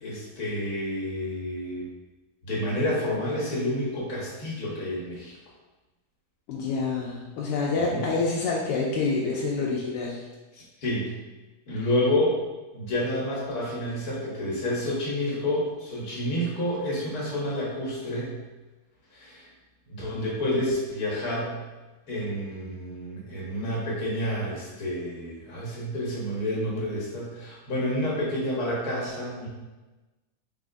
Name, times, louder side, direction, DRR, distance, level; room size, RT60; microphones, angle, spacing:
voice 1, 0.0-1.9 2.4-5.3 7.8-8.1 10.5-11.1 11.7-12.4 12.7-18.3 19.1-19.5 19.9-21.5 22.1-29.5, left 1 dB, 65° left, -5 dB, 1.6 m, -29 dB
voice 2, 6.5-10.2 11.8-11.9, left 4 dB, 90° left, -4 dB, 1.2 m, -27 dB
3.7 x 3.6 x 2.5 m, 1.2 s
omnidirectional pair, 1.7 m